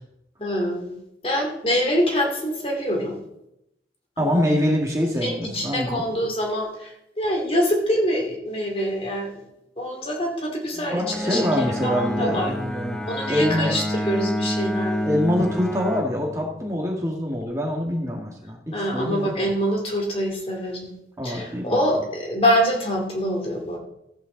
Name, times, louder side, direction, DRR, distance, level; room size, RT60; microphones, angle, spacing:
voice 1, 0.4-1.0 1.2-3.2 4.2-4.4 5.2-9.3 9.8-11.5 11.8-12.5 13.0-15.1 18.7-20.9 21.2-23.8, equal, 30° left, 0 dB, 2.4 m, -25 dB
voice 2, 4.2-6.0 7.2-7.4 10.8-13.0 13.3-13.7 15.0-19.5 21.2-21.8, left 1 dB, 15° right, -1 dB, 1.6 m, -25 dB
Bowed string instrument, 11.0-16.8, equal, 5° left, 0.7 m, -28 dB
14.5 x 8.6 x 3.9 m, 0.84 s
head